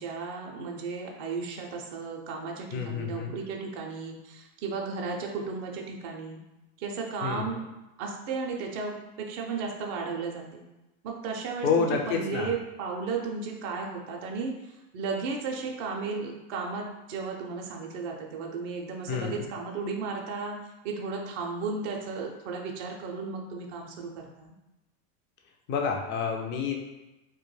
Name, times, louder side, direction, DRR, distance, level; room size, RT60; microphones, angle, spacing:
voice 1, 0.0-6.4 6.8-7.6 8.0-10.6 11.0-20.6 20.8-24.5, right 4 dB, 40° right, 0 dB, 0.4 m, -34 dB
voice 2, 2.7-3.3 7.2-7.5 11.6-12.5 19.1-19.4 25.7-26.7, left 5 dB, 30° left, 2 dB, 0.3 m, -28 dB
2.2 x 2.1 x 3.1 m, 1.0 s
supercardioid pair, 110°, 41 cm